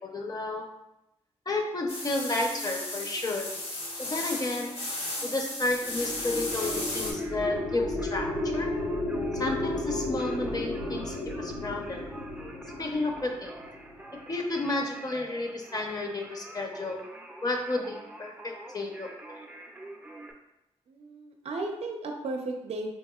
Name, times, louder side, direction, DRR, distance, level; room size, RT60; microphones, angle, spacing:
voice 1, 0.0-0.6 1.5-3.5 4.0-4.7 5.2-8.7 9.4-12.1 12.8-13.5 14.3-17.0 17.4-19.4, left 2 dB, 35° left, 1 dB, 0.5 m, -32 dB
sound 1, 1.9-7.1, left 2 dB, 60° left, 0.9 m, -35 dB
sound 2, 5.7-14.2, left 1 dB, 85° left, 0.8 m, -33 dB
Singing, 6.5-20.3, right 1 dB, 10° right, 0.4 m, -47 dB
voice 2, 20.9-22.9, right 2 dB, 70° right, 3 dB, 0.4 m, -35 dB
3.5 x 2.9 x 2.2 m, 0.89 s
cardioid pair, 85°, 11 cm